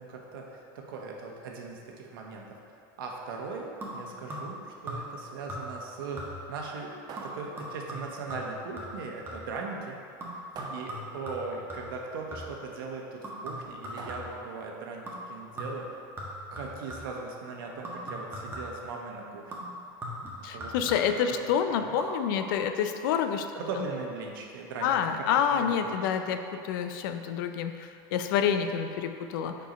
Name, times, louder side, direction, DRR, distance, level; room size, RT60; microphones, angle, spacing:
voice 1, 0.0-2.6 3.0-10.0 10.7-16.0 16.5-19.7 20.5-20.7 21.0-21.4 21.7-21.9 23.5-26.3 28.5-28.7, right 4 dB, 80° right, 0 dB, 1.0 m, -39 dB
sound 1, 3.8-4.6 4.9-5.2 5.5-5.9 6.2-6.6 7.2-9.6 10.2-12.7 13.2-14.5 15.1-15.3 15.6-17.2 17.8-18.9 19.5-21.3 21.9-22.1 22.4-22.5, equal, 20° right, 1.3 m, -40 dB
sound 2, 7.1-8.2 10.5-11.5 14.0-14.8, right 5 dB, 35° right, 0.5 m, -46 dB
voice 2, 20.4-23.5 24.8-29.6, left 8 dB, 75° left, 7 dB, 0.5 m, -28 dB
5.1 x 4.5 x 5.2 m, 2.5 s
supercardioid pair, 120°, 11 cm